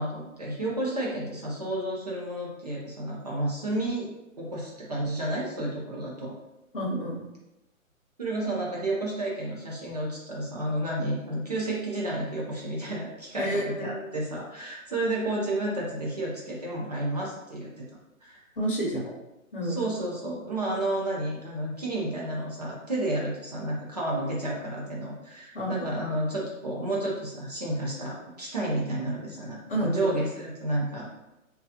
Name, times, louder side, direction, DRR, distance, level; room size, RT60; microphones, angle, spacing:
voice 1, 0.0-6.3 8.2-17.8 18.2-18.4 19.7-31.1, right 1 dB, 30° right, -4 dB, 0.5 m, -31 dB
voice 2, 6.7-7.2 13.4-13.9 18.6-19.0 19.5-19.8 25.5-26.0 29.7-30.2, right 1 dB, 40° left, -1 dB, 0.6 m, -29 dB
3.3 x 2.3 x 2.6 m, 0.95 s
hypercardioid pair, 165°, 42 cm